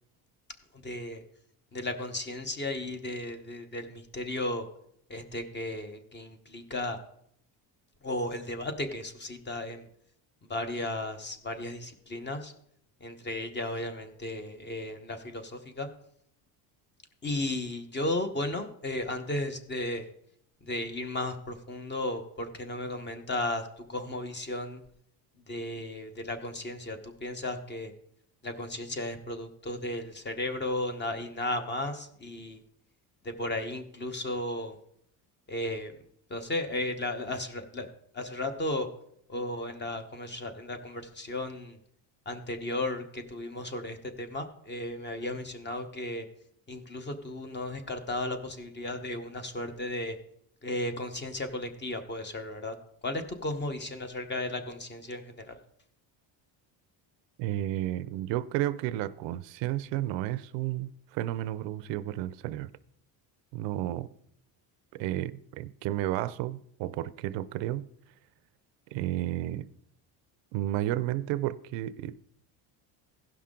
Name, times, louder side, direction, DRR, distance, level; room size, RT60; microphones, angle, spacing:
voice 1, 0.8-1.2 1.7-4.6 5.1-7.0 8.0-9.9 10.5-12.5 13.0-15.9 17.2-20.1 20.6-24.8 25.5-27.9 28.4-32.6 33.2-34.7 35.5-35.9 36.3-37.9 38.1-38.9 39.3-41.8 42.3-46.2 46.7-50.1 50.6-52.7 53.0-55.6, left 1 dB, 25° left, 1.0 m, -34 dB
voice 2, 57.4-62.7 63.5-64.1 64.9-67.9 68.9-69.7 70.5-72.2, right 14 dB, 80° right, 0.6 m, -32 dB
16.5 x 5.8 x 3.7 m
cardioid pair, 130°, 43 cm